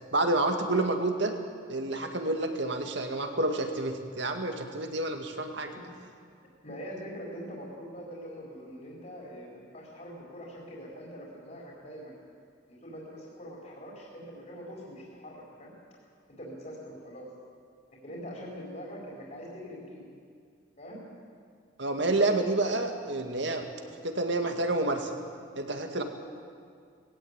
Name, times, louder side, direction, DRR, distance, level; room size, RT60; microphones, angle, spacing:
voice 1, 0.1-1.4 1.7-5.7 21.8-23.7 24.0-25.1 25.6-26.0, right 2 dB, 65° right, 5 dB, 2.0 m, -29 dB
voice 2, 5.7-6.1 6.6-12.2 12.7-15.7 16.4-17.3 18.0-20.0 20.8-21.0, equal, 40° left, -3 dB, 4.5 m, -43 dB
20.5 x 16.5 x 8.9 m, 2.2 s
head